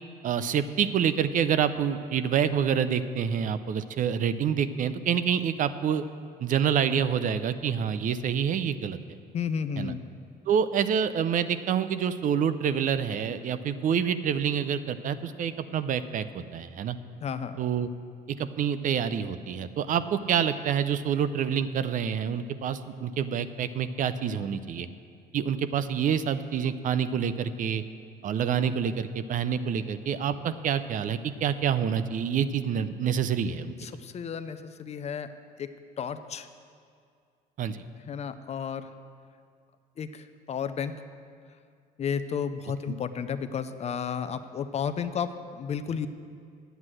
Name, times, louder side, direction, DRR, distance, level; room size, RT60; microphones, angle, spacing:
voice 1, 0.2-6.0 6.4-9.0 9.8-9.9 10.5-17.0 17.6-17.9 18.4-24.9 25.3-27.8 28.2-33.7 37.6-37.8, right 8 dB, 50° right, 12 dB, 0.5 m, -27 dB
voice 2, 9.3-10.0 17.2-17.6 33.8-35.3 35.6-36.5 38.0-38.9 40.0-40.9 42.0-46.1, left 7 dB, 40° left, 11 dB, 0.6 m, -32 dB
9.6 x 8.1 x 7.6 m, 2.3 s
cardioid pair, 110°, 17 cm